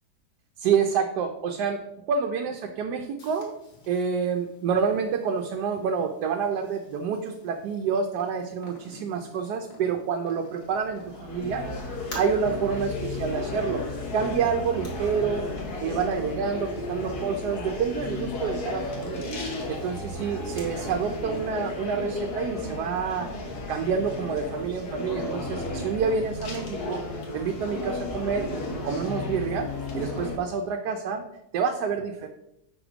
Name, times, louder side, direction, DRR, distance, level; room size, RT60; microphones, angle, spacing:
voice 1, 0.6-1.8 2.1-3.5 3.9-11.6 12.1-13.8 14.1-15.5 15.8-19.3 19.7-23.3 23.7-27.0 27.3-28.5 28.8-29.7 29.9-31.2 31.5-32.3, right 6 dB, 85° right, 4 dB, 1.1 m, -28 dB
Purr, 3.2-21.2, left 2 dB, 55° left, 1.8 m, -51 dB
sound 1, 10.6-30.4, left 2 dB, 70° left, 1.7 m, -34 dB
4.9 x 4.3 x 4.9 m, 0.84 s
omnidirectional pair, 1.7 m